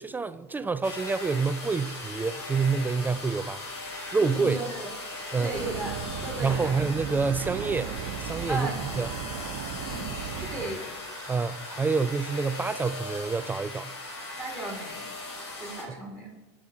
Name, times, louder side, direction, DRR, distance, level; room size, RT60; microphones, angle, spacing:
voice 1, 0.0-3.6 4.1-4.6 5.3-5.5 6.4-8.7 9.0-9.1 11.3-13.9, right 4 dB, 15° right, 0.3 m, -27 dB
sound 1, 0.8-15.8, left 2 dB, 85° left, 3.4 m, -38 dB
voice 2, 4.2-4.9 5.4-5.9 6.2-6.7 8.5-8.8 9.8-10.1 10.4-10.9 14.4-15.0 15.6-16.3, right 2 dB, 5° left, 3.6 m, -35 dB
sound 2, 5.5-10.7, right 9 dB, 60° right, 1.0 m, -36 dB
18.0 x 6.2 x 4.3 m
hypercardioid pair, 110°, 14 cm